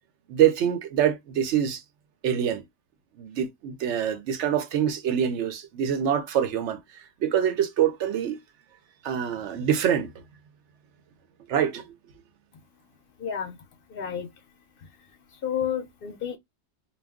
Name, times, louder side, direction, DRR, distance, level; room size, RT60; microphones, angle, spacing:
voice 1, 0.3-1.8 2.2-2.6 3.2-8.4 9.0-10.1 11.5-11.8, right 9 dB, 75° right, 0.9 m, -25 dB
voice 2, 13.2-13.6 13.9-14.3 15.3-16.4, left 8 dB, 60° left, 0.7 m, -30 dB
2.3 x 2.2 x 3.4 m
omnidirectional pair, 1.2 m